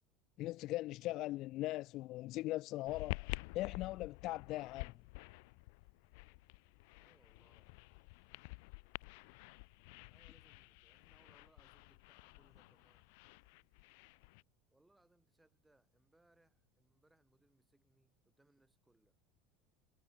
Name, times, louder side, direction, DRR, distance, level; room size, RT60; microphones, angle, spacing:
voice 1, 0.4-4.9, left 17 dB, 45° left, 0.3 m, -40 dB
sound 1, 2.9-14.4, left 30 dB, 65° left, 0.9 m, -49 dB
voice 2, 7.0-7.7 10.1-13.0 14.7-19.2, right 2 dB, 5° right, 4.5 m, -73 dB
supercardioid pair, 160°, 0 cm